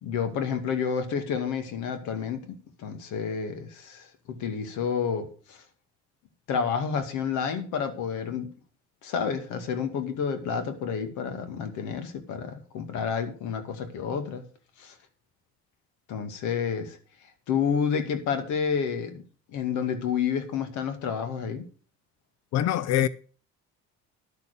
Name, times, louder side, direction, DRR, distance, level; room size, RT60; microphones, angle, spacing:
voice 1, 0.0-5.6 6.5-8.5 9.0-14.4 14.8-14.9 16.1-17.0 17.5-19.2 19.5-21.6, left 6 dB, 80° left, 2.2 m, -30 dB
voice 2, 22.5-23.1, left 11 dB, 60° left, 0.6 m, -23 dB
11.5 x 6.8 x 6.6 m
cardioid pair, 140°, 29 cm